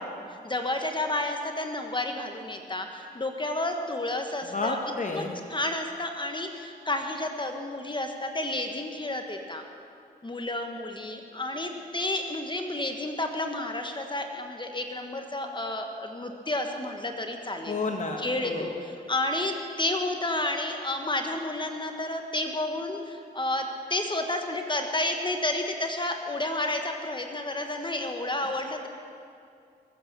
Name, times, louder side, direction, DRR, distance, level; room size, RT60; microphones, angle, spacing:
voice 1, 0.4-4.8 5.1-5.2 5.5-9.6 10.2-17.8 18.2-28.9, left 1 dB, 25° left, 4 dB, 1.5 m, -31 dB
voice 2, 4.5-5.4 17.7-18.7 28.4-28.5, left 3 dB, 45° left, 2 dB, 1.7 m, -31 dB
21.5 x 8.5 x 6.9 m, 2.4 s
cardioid pair, 50°, 18 cm